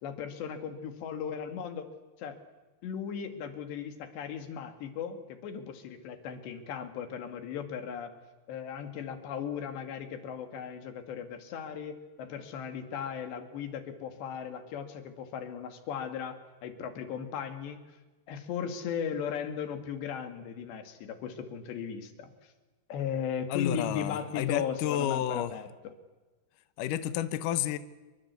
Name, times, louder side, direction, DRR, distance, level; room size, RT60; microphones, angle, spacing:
voice 1, 0.0-1.9 2.2-2.4 2.8-8.1 8.5-17.8 18.3-22.3 22.9-25.9, left 7 dB, 85° left, 8 dB, 4.4 m, -37 dB
voice 2, 23.5-25.5 26.8-27.8, left 11 dB, 70° left, 12 dB, 2.2 m, -30 dB
27.5 x 24.0 x 8.3 m, 1.2 s
omnidirectional pair, 4.8 m